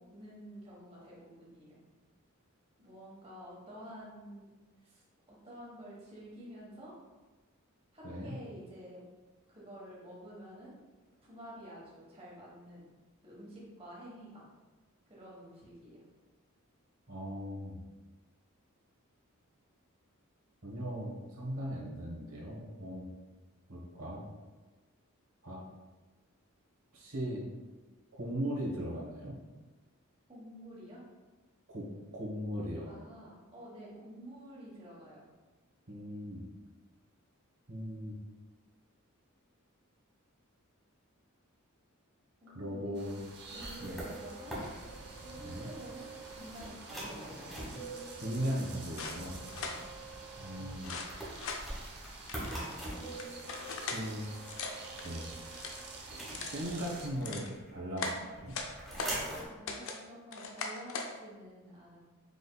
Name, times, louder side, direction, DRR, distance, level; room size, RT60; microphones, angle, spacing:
voice 1, 0.0-1.8 2.8-4.5 4.8-6.9 7.9-9.0 9.5-10.7 11.2-12.9 13.2-14.4 15.1-16.0 30.3-31.0 32.9-35.2 42.4-43.2 43.5-44.6 45.2-47.5 49.6-49.9 59.4-62.0, equal, 25° right, -6 dB, 1.2 m, -50 dB
voice 2, 8.0-8.3 17.1-17.8 20.6-23.1 23.7-24.2 25.4-25.6 26.9-27.4 28.2-29.4 31.7-31.8 32.1-32.9 35.9-36.5 37.7-38.2 42.5-43.2 43.8-44.0 45.4-45.7 48.2-49.4 50.4-50.9 53.8-54.3 55.0-55.3 56.5-58.5, equal, 70° right, -4 dB, 1.1 m, -38 dB
sound 1, 42.9-57.1, right 3 dB, 50° right, 0.7 m, -49 dB
sound 2, 43.5-57.7 58.1-59.5, right 1 dB, ahead, 1.3 m, -44 dB
sound 3, 49.0-49.8 50.8-51.6 52.3-54.0 54.4-55.1 55.5-55.8 56.3-56.6 57.0-57.5 58.0-59.2 59.7-60.0 60.3-61.1, left 4 dB, 65° left, 0.5 m, -40 dB
4.9 x 3.9 x 2.3 m, 1.2 s
head